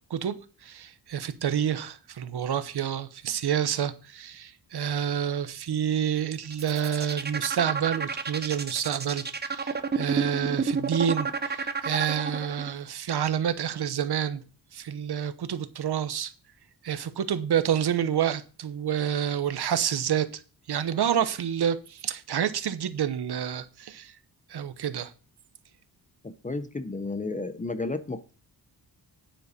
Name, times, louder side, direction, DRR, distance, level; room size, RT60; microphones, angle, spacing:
voice 1, 0.6-9.2 9.5-14.4 14.7-16.3 16.8-20.4 20.7-24.1 24.5-25.1, right 9 dB, 65° right, 1.0 m, -28 dB
sound 1, 6.4-12.7, right 5 dB, 25° right, 0.7 m, -30 dB
voice 2, 26.2-28.3, left 3 dB, 20° left, 0.6 m, -32 dB
9.8 x 9.0 x 4.2 m
wide cardioid pair, 160°, 43 cm